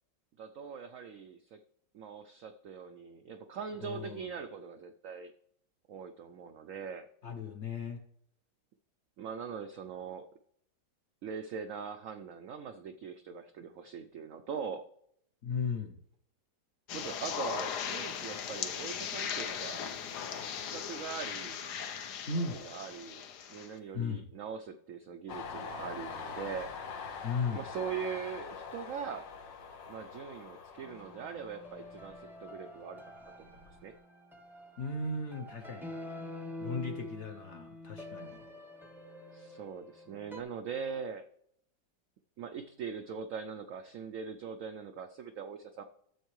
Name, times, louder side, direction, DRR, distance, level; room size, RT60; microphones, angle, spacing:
voice 1, 0.4-1.6 1.9-5.3 5.9-7.1 9.2-10.3 11.2-14.9 16.9-19.9 20.5-21.6 22.2-22.3 22.6-23.2 23.5-26.7 27.5-29.3 29.9-33.0 33.4-33.9 39.3-41.3 42.4-45.8, right 6 dB, 75° right, 8 dB, 0.7 m, -41 dB
voice 2, 3.8-4.3 7.2-8.0 15.4-16.0 22.3-22.6 23.9-24.2 27.2-27.6 34.8-35.9 36.6-38.5, left 4 dB, 50° left, 5 dB, 0.9 m, -36 dB
sound 1, 16.9-23.7, left 8 dB, 70° left, 1.3 m, -38 dB
Train, 25.3-32.7 33.1-33.9, left 5 dB, 85° left, 1.6 m, -44 dB
sound 2, 30.8-40.4, left 1 dB, 5° right, 0.4 m, -47 dB
12.5 x 7.2 x 3.1 m, 0.70 s
omnidirectional pair, 1.9 m